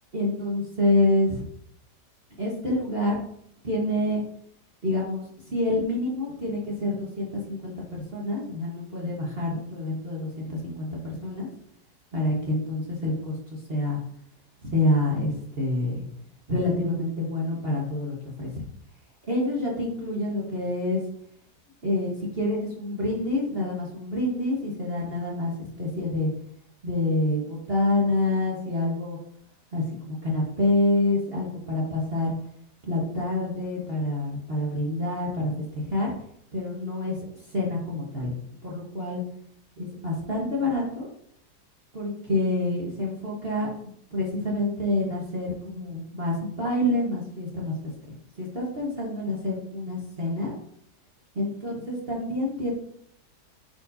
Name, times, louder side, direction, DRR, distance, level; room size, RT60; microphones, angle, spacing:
voice 1, 0.1-1.4 2.4-3.2 3.6-4.2 4.8-11.5 12.1-14.0 14.6-16.0 16.5-18.6 19.3-21.0 21.8-26.3 26.8-29.2 29.7-32.4 32.8-36.1 36.5-38.3 38.6-39.2 39.8-41.1 41.9-43.7 44.1-50.5 51.3-52.7, left 1 dB, 35° right, -4 dB, 1.4 m, -27 dB
9.6 x 4.5 x 2.7 m, 0.69 s
omnidirectional pair, 1.9 m